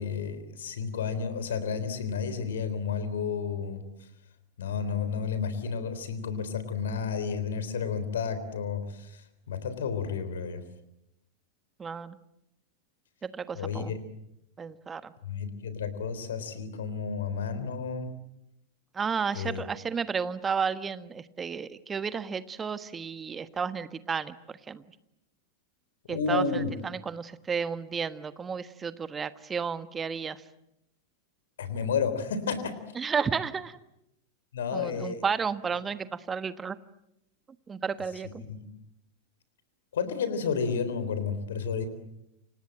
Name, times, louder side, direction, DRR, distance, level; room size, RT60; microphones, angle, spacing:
voice 1, 0.0-3.8 4.6-9.2 9.5-10.6 13.5-14.0 15.2-18.1 19.3-19.6 26.1-26.7 31.6-32.7 34.5-35.2 38.5-38.6 39.9-41.9, left 6 dB, 60° left, 12 dB, 3.8 m, -31 dB
voice 2, 11.8-12.2 13.2-13.9 14.6-15.1 18.9-24.3 24.7-24.8 26.1-30.4 32.9-33.8 34.7-36.8 37.7-38.4, right 6 dB, 20° right, 13 dB, 1.3 m, -32 dB
29.5 x 26.5 x 7.7 m, 0.84 s
figure-of-eight pair, 90°, 0 cm